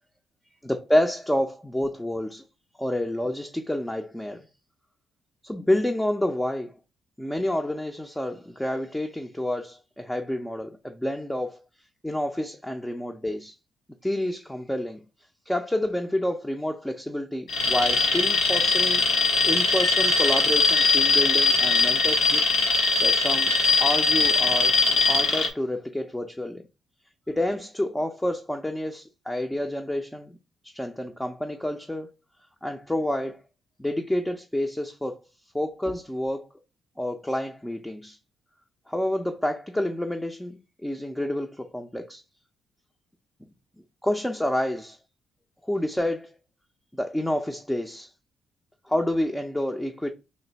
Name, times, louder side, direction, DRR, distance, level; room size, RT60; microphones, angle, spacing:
voice 1, 0.6-2.4 2.8-4.5 5.4-6.7 7.2-11.6 12.0-13.5 14.0-15.0 15.5-22.4 23.0-26.6 27.3-30.4 30.6-32.1 32.6-33.4 33.8-35.2 35.5-36.5 37.0-38.2 38.9-42.2 43.4-43.5 44.0-45.0 45.6-46.3 46.9-48.1 48.8-50.1, left 1 dB, 5° left, 0.5 m, -29 dB
Alarm, 17.5-25.5, left 3 dB, 80° left, 0.9 m, -21 dB
3.2 x 2.6 x 4.0 m
cardioid pair, 90°, 0 cm